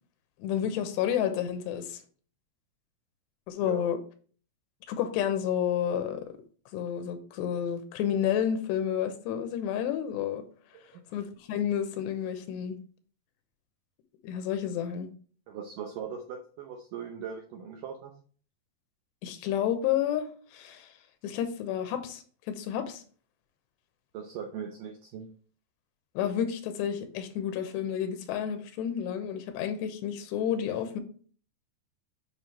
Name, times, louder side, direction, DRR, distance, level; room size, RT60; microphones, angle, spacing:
voice 1, 0.4-2.0 3.5-4.0 4.9-6.3 6.7-10.4 11.1-12.8 14.2-15.1 19.2-20.9 21.2-23.0 26.2-31.0, left 9 dB, 85° left, 3.0 m, -30 dB
voice 2, 3.6-3.9 10.7-11.0 15.5-18.1 24.1-25.3, right 7 dB, 80° right, 1.9 m, -40 dB
8.7 x 5.4 x 3.2 m
omnidirectional pair, 4.9 m